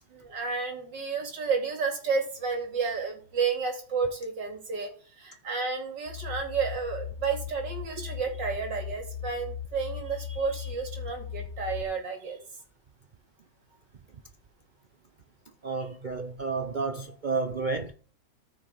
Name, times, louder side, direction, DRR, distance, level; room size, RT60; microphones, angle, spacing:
voice 1, 0.1-4.9 5.2-12.4 15.8-15.9, right 5 dB, 85° right, 3.1 m, -31 dB
sound 1, 6.1-11.8, left 9 dB, 55° left, 1.1 m, -38 dB
voice 2, 15.6-17.9, right 4 dB, 65° right, 0.4 m, -31 dB
14.0 x 6.3 x 3.5 m
omnidirectional pair, 1.9 m